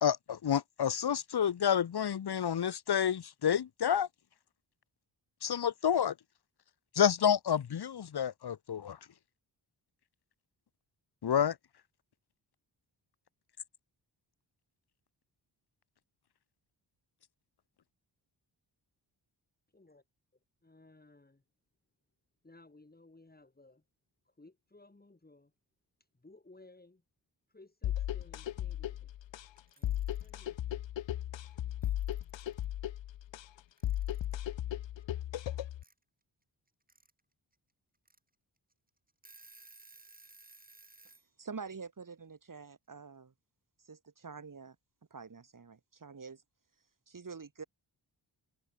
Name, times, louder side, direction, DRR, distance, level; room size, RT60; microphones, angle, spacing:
voice 1, 0.0-4.1 5.4-6.1 6.9-9.0 11.2-11.5, left 8 dB, 60° left, 1.3 m, -29 dB
voice 2, 19.7-20.0 20.6-21.4 22.4-23.8 24.3-25.5 26.1-27.0 27.5-29.1 29.8-30.6, left 2 dB, 20° left, 7.4 m, -59 dB
sound 1, 27.8-35.8, left 12 dB, 80° left, 0.7 m, -36 dB
Alarm / Clock, 29.6-30.4 31.5-31.6 31.8-32.7 33.8-34.4 35.8-35.9 36.7-37.1 37.5-37.6 38.1-38.2 38.7-38.8 39.1-41.3, right 2 dB, 20° right, 4.7 m, -58 dB
voice 3, 41.4-43.3 43.8-44.8 45.1-46.4 47.1-47.6, right 5 dB, 45° right, 5.8 m, -46 dB
wide cardioid pair, 125°, 44 cm